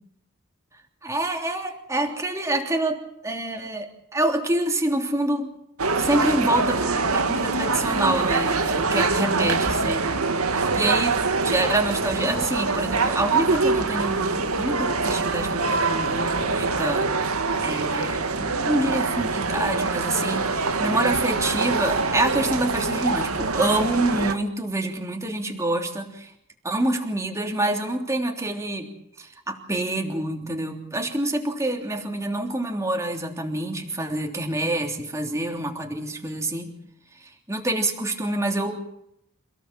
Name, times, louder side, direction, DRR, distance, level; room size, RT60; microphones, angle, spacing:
voice 1, 1.0-5.5 6.0-17.1 17.6-26.3 26.6-28.9 29.2-36.7 37.2-38.9, right 1 dB, 15° right, 3 dB, 3.2 m, -27 dB
sound 1, 5.8-24.3, right 3 dB, 85° right, 2.1 m, -24 dB
28.5 x 17.0 x 7.6 m, 0.76 s
head